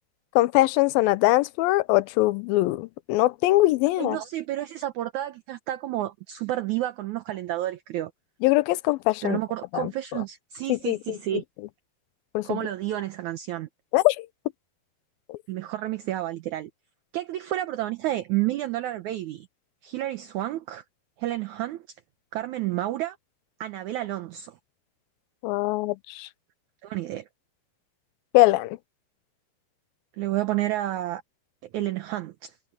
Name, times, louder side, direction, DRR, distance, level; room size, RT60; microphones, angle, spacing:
voice 1, 0.4-4.2 8.4-9.4 9.7-10.2 10.7-11.2 12.3-12.6 13.9-14.3 15.3-15.4 25.4-26.3 28.3-28.8, left 18 dB, 85° left, 2.5 m, -22 dB
voice 2, 4.0-8.1 9.2-11.4 12.4-13.7 15.5-16.7 17.1-19.5 19.8-20.8 21.2-21.8 22.3-23.2 23.6-24.6 26.8-27.2 30.2-31.2 31.7-32.5, right 14 dB, 70° right, 2.0 m, -30 dB
omnidirectional pair, 4.1 m